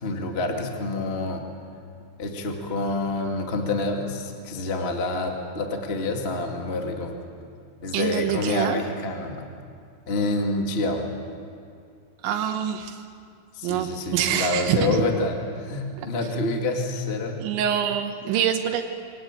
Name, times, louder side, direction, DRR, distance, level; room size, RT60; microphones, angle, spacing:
voice 1, 0.0-1.4 2.2-7.1 7.8-9.5 10.1-11.1 13.5-17.4, left 2 dB, 50° left, 2 dB, 0.7 m, -27 dB
voice 2, 7.9-8.8 12.2-13.0 13.6-15.0 17.4-18.8, right 9 dB, 85° right, 5 dB, 3.5 m, -25 dB
24.0 x 17.5 x 9.0 m, 2.3 s
omnidirectional pair, 5.2 m